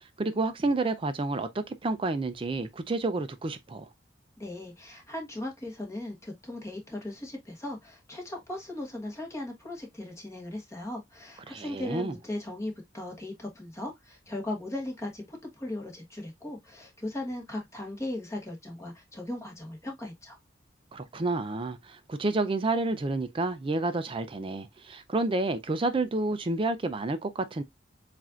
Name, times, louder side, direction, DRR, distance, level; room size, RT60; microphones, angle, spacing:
voice 1, 0.2-3.9 11.5-12.1 20.9-27.6, right 2 dB, 30° right, 0.4 m, -30 dB
voice 2, 4.4-20.4, left 1 dB, 15° left, 1.2 m, -38 dB
7.3 x 2.5 x 2.4 m
head